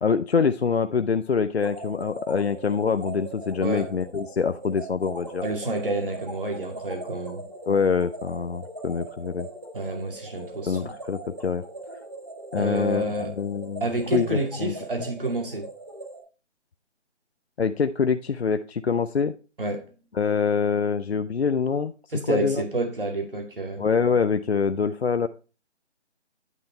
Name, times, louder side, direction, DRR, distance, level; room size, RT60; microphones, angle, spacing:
voice 1, 0.0-5.4 7.7-9.5 10.7-11.6 12.5-13.9 14.1-14.7 17.6-19.3 20.1-21.9 22.3-22.6 23.8-25.3, left 5 dB, 60° left, 0.5 m, -25 dB
sound 1, 1.6-16.2, right 2 dB, 25° right, 1.2 m, -40 dB
voice 2, 5.4-7.4 9.7-10.9 12.6-13.3 13.8-15.7 19.6-19.8 22.1-23.8, right 2 dB, 50° right, 2.5 m, -29 dB
9.3 x 5.8 x 4.3 m
figure-of-eight pair, 180°, 36 cm